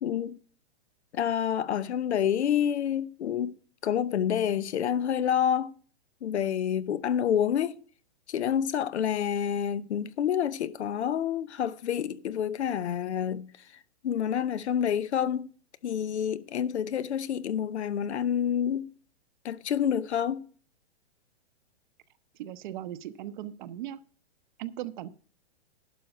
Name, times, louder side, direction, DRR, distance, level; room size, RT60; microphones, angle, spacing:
voice 1, 0.0-0.4 1.1-3.5 3.8-5.7 6.2-7.8 8.3-13.5 14.0-15.5 15.8-18.9 19.4-20.5, left 9 dB, 80° left, 0.8 m, -28 dB
voice 2, 22.4-24.0 24.6-25.1, right 12 dB, 45° right, 0.8 m, -38 dB
11.5 x 4.6 x 8.0 m
hypercardioid pair, 140°, 33 cm